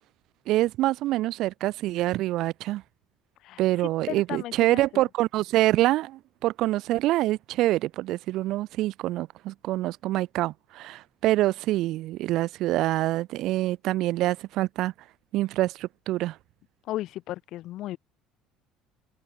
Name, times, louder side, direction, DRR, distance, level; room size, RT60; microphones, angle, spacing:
voice 1, 0.5-2.8 3.6-14.9 15.3-16.4, right 16 dB, 65° right, 3.6 m, -26 dB
voice 2, 4.1-5.0 16.9-18.0, left 15 dB, 60° left, 6.9 m, -35 dB
cardioid pair, 135°, 0 cm